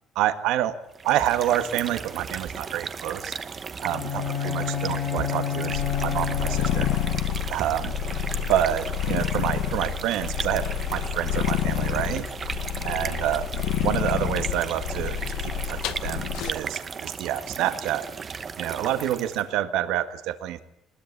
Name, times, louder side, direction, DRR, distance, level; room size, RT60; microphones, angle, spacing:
voice 1, 0.2-0.8 1.0-3.3 3.8-6.9 7.5-7.9 8.5-12.3 12.8-13.5 13.8-18.1 18.6-20.6, right 12 dB, 70° right, 10 dB, 1.8 m, -28 dB
sound 1, 0.9-19.5, right 5 dB, 25° right, 1.1 m, -36 dB
Bowed string instrument, 3.8-7.5, left 8 dB, 40° left, 2.5 m, -30 dB
sound 2, 5.7-16.5, left 10 dB, 70° left, 1.4 m, -29 dB
23.0 x 21.0 x 9.7 m, 0.73 s
cardioid pair, 175°, 0 cm